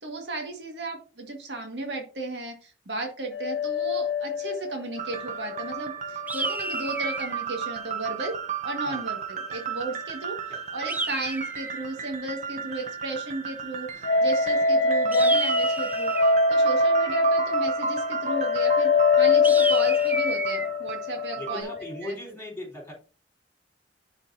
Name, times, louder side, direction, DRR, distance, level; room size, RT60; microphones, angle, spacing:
voice 1, 0.0-8.3 8.6-10.4 10.7-18.9 19.2-21.7 22.0-22.1, right 2 dB, 75° right, 3 dB, 1.8 m, -34 dB
sound 1, 3.3-6.5 6.8-6.9 14.0-22.0, left 3 dB, 85° left, 0.7 m, -24 dB
sound 2, 5.0-21.6, right 6 dB, 45° right, 0.8 m, -35 dB
sound 3, 6.3-7.4 10.9-11.9 15.1-16.4 19.4-20.7, right 2 dB, 10° right, 0.4 m, -31 dB
voice 2, 21.3-22.9, left 1 dB, 15° left, -1 dB, 3.7 m, -38 dB
11.0 x 4.5 x 2.7 m, 0.36 s
head